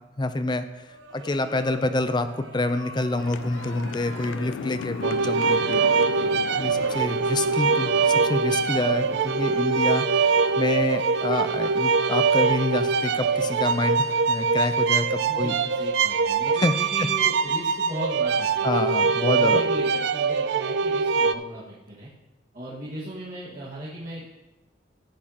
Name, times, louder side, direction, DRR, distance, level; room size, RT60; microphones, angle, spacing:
voice 1, 0.2-0.8 1.1-6.1 6.6-15.5 16.6-16.7 18.6-19.6, left 2 dB, 25° left, 9 dB, 0.5 m, -27 dB
sound 1, 0.8-11.8, right 3 dB, 80° right, 0.9 m, -45 dB
sound 2, 3.2-15.2, left 7 dB, 85° left, 0.3 m, -40 dB
sound 3, 5.0-21.3, right 5 dB, 65° right, 0.3 m, -23 dB
voice 2, 15.2-18.7 19.3-22.1 22.5-24.3, right 1 dB, 45° right, -9 dB, 1.7 m, -37 dB
14.5 x 8.6 x 2.9 m, 1.1 s
head